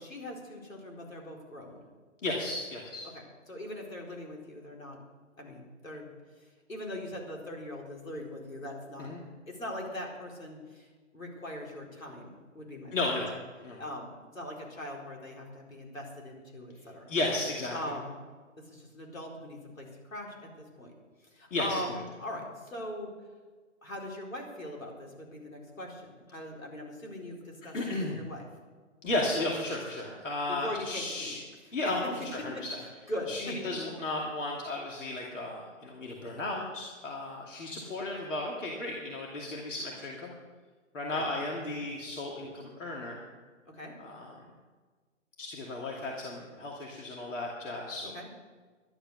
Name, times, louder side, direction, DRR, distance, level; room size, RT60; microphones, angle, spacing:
voice 1, 0.0-1.8 3.5-5.0 5.4-6.1 6.4-9.1 9.5-10.9 11.1-12.9 13.8-17.1 17.7-18.1 18.6-20.9 21.2-23.1 23.8-27.8 28.1-28.5 30.5-31.3 31.8-31.9 32.5-32.6 33.1-33.6 41.1-41.3 43.7-44.0 48.1-48.3, left 1 dB, 85° left, -1 dB, 4.4 m, -41 dB
voice 2, 2.2-3.1 9.0-9.2 12.9-13.3 13.6-13.8 17.1-17.8 21.5-22.0 27.7-28.2 29.0-31.4 31.7-32.8 33.3-40.3 40.9-43.2 44.0-44.3 45.4-48.2, left 2 dB, 70° left, -2 dB, 2.7 m, -34 dB
12.0 x 11.5 x 6.5 m, 1.4 s
figure-of-eight pair, 130°, 39 cm